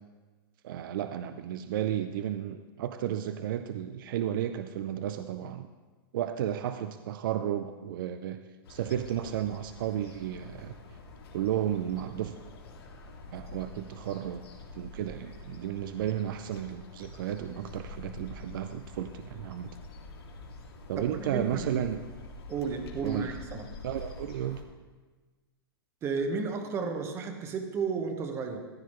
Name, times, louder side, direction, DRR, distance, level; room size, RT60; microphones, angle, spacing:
voice 1, 0.6-5.7 6.1-8.4 8.7-10.7 11.3-12.4 13.3-14.4 14.7-19.8 20.9-22.0 23.0-23.3 23.8-24.6, right 11 dB, 60° right, 10 dB, 0.5 m, -33 dB
sound 1, 8.6-24.6, left 2 dB, 85° left, 2.1 m, -46 dB
voice 2, 21.0-21.8 22.5-23.7 26.0-28.6, right 5 dB, 20° right, 5 dB, 1.1 m, -33 dB
14.5 x 10.5 x 3.1 m, 1.3 s
hypercardioid pair, 150°, 13 cm